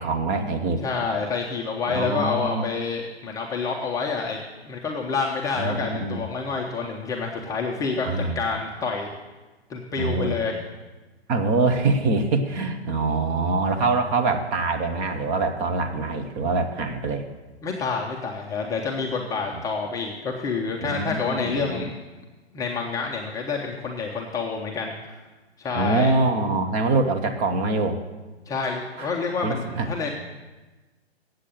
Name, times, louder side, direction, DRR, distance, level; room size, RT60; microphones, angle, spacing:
voice 1, 0.0-0.8 1.9-2.6 5.5-6.2 8.0-8.4 10.0-10.4 11.3-17.3 20.8-21.9 25.7-28.0 29.0-29.1 29.4-29.9, right 3 dB, 25° right, 6 dB, 0.8 m, -24 dB
voice 2, 0.8-9.1 9.7-10.6 17.6-21.9 22.5-25.2 25.6-26.1 28.5-30.1, left 4 dB, 10° left, -1 dB, 0.5 m, -28 dB
8.2 x 7.8 x 7.5 m, 1.2 s
hypercardioid pair, 130°, 32 cm